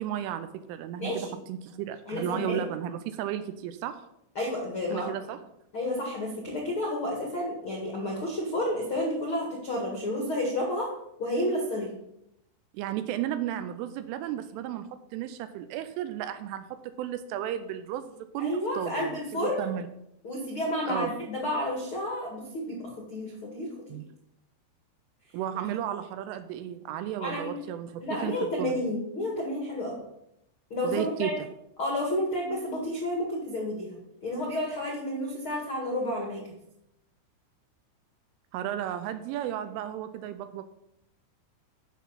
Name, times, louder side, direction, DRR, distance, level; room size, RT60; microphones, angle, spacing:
voice 1, 0.0-4.0 4.9-5.4 12.7-19.9 20.9-21.1 23.9-24.0 25.3-28.8 30.8-31.3 38.5-40.7, right 11 dB, 85° right, 11 dB, 3.0 m, -34 dB
voice 2, 1.0-1.3 2.1-2.6 4.3-5.1 5.7-10.9 11.2-11.9 18.4-19.7 20.2-23.7 27.2-27.5 28.0-30.0 30.7-31.3 31.8-36.4, left 1 dB, 65° left, -1 dB, 1.3 m, -31 dB
15.0 x 6.2 x 4.2 m, 0.80 s
omnidirectional pair, 5.9 m